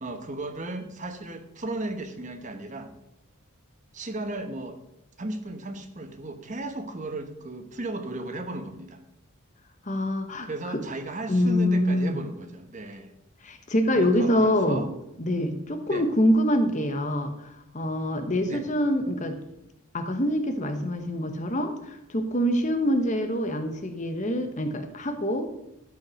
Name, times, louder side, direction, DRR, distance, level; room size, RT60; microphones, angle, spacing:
voice 1, 0.0-2.9 3.9-4.8 5.2-9.0 10.4-13.1 13.9-14.9 15.9-16.1 18.4-18.6, right 2 dB, 35° right, 7 dB, 1.0 m, -35 dB
voice 2, 9.9-10.8 11.3-12.2 13.4-14.8 15.2-19.4 19.9-25.5, equal, 35° left, 7 dB, 1.0 m, -25 dB
12.0 x 5.5 x 6.4 m, 0.85 s
head